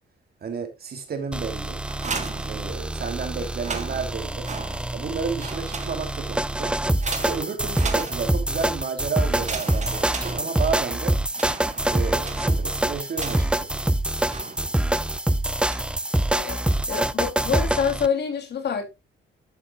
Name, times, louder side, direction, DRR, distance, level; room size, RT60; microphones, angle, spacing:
voice 1, 0.4-1.8 2.5-4.5 4.9-6.8 7.2-11.2 11.9-13.8, right 5 dB, 50° right, 3.1 m, -31 dB
sound 1, 1.3-18.1, right 1 dB, 5° right, 0.5 m, -25 dB
sound 2, 1.8-3.1 3.5-5.1 5.4-6.3 7.0-8.6 9.3-10.9 11.3-13.7 14.3-15.0 15.7-16.0 16.5-17.0, right 5 dB, 35° right, 2.1 m, -36 dB
voice 2, 16.3-16.6 16.9-18.9, left 7 dB, 55° left, 3.3 m, -26 dB
11.0 x 8.5 x 2.4 m
cardioid pair, 90°, 20 cm